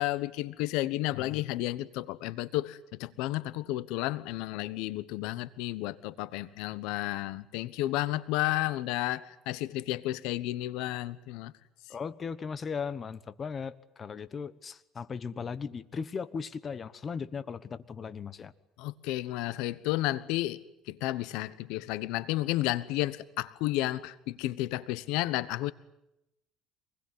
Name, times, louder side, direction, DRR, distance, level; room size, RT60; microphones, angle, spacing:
voice 1, 0.0-11.5 18.8-20.6 20.9-25.7, left 16 dB, 85° left, 16 dB, 1.1 m, -32 dB
voice 2, 11.9-18.5, left 6 dB, 30° left, 14 dB, 1.2 m, -37 dB
26.0 x 20.5 x 9.9 m, 0.87 s
cardioid pair, 130°, 0 cm